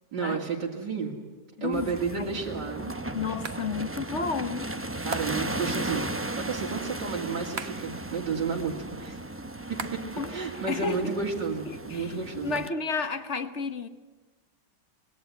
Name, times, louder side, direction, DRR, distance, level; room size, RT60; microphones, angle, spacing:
voice 1, 0.1-1.1 1.6-2.9 5.0-9.2 9.7-10.0 10.3-12.6, right 5 dB, 80° right, 3.2 m, -32 dB
voice 2, 1.6-2.4 3.1-4.7 5.3-5.5 10.2-11.1 11.7-13.9, left 4 dB, 45° left, 1.4 m, -32 dB
sound 1, 1.7-12.7, right 1 dB, 20° right, 0.4 m, -36 dB
sound 2, 1.9-2.3 3.4-3.7 5.1-5.6 7.6-8.0 9.8-10.3 10.5-11.5, right 6 dB, 45° right, 1.1 m, -40 dB
25.0 x 20.5 x 9.5 m
omnidirectional pair, 1.9 m